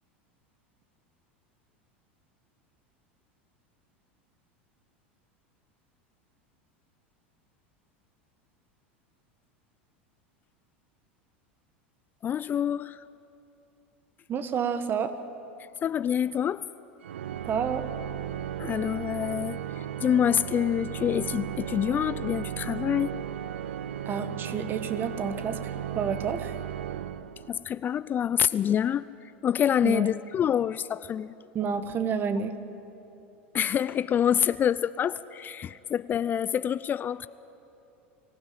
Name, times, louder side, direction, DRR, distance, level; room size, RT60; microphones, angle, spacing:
voice 1, 12.2-13.0 15.8-16.6 18.6-23.1 27.5-31.3 33.5-37.3, left 9 dB, 30° left, 16 dB, 0.4 m, -27 dB
voice 2, 14.3-15.2 17.4-17.8 24.0-26.5 29.8-30.1 31.5-32.5, right 6 dB, 35° right, 10 dB, 1.5 m, -29 dB
Organ, 17.0-27.8, right 10 dB, 85° right, 0.5 m, -35 dB
24.0 x 15.5 x 8.8 m, 2.9 s
hypercardioid pair, 90°, 6 cm